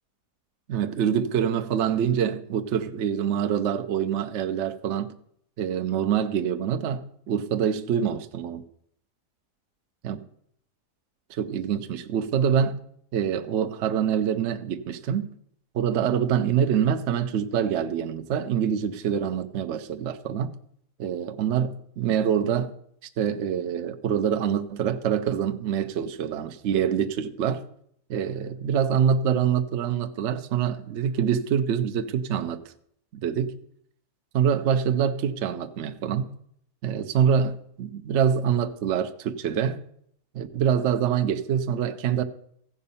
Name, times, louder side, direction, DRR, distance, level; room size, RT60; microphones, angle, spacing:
voice 1, 0.7-5.1 5.6-8.6 10.0-10.2 11.3-12.8 13.1-15.3 15.7-20.5 21.0-22.7 23.2-27.6 28.1-32.6 33.2-33.5 34.3-36.3 36.8-39.8 40.3-42.2, right 8 dB, 60° right, 0.7 m, -25 dB
15.0 x 5.2 x 5.5 m
omnidirectional pair, 1.7 m